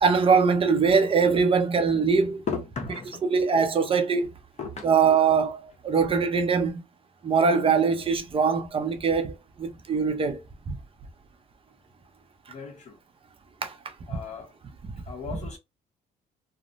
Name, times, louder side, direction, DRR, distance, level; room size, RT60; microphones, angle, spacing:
voice 1, 0.0-2.4 3.2-4.3 4.8-6.8 7.2-10.8 13.6-14.2 14.8-14.9 15.3-15.4, right 5 dB, 35° right, 0.6 m, -23 dB
voice 2, 2.5-3.2 4.6-4.9 12.5-12.9 14.1-14.5 15.1-15.6, left 5 dB, 40° left, 1.1 m, -35 dB
3.1 x 2.1 x 2.6 m
cardioid pair, 110°, 17 cm